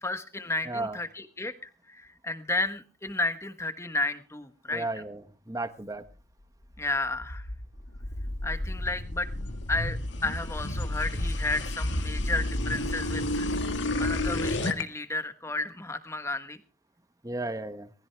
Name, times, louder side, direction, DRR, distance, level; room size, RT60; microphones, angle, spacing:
voice 1, 0.0-4.8 6.8-7.5 8.4-9.3 9.7-13.5 14.0-16.6, left 2 dB, 15° left, 10 dB, 1.2 m, -32 dB
voice 2, 0.7-1.0 4.7-6.0 17.2-17.9, right 2 dB, 15° right, 11 dB, 1.0 m, -34 dB
sound 1, 6.8-14.8, left 1 dB, 65° left, 1.8 m, -31 dB
19.5 x 15.5 x 3.4 m, 0.37 s
head